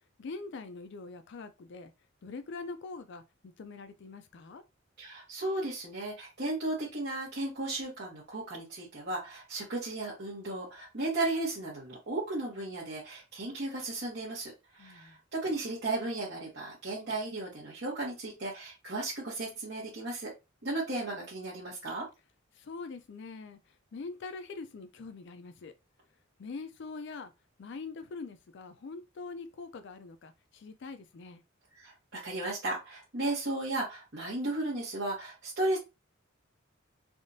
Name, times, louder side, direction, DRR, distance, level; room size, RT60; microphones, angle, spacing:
voice 1, 0.2-1.9 2.2-4.6 14.8-15.2 22.5-23.6 23.9-25.7 26.4-27.3 27.6-31.4, left 4 dB, 60° left, 0.4 m, -43 dB
voice 2, 5.0-20.3 20.6-22.1 31.7-35.8, right 2 dB, 55° right, 1.1 m, -35 dB
3.5 x 2.4 x 2.6 m
head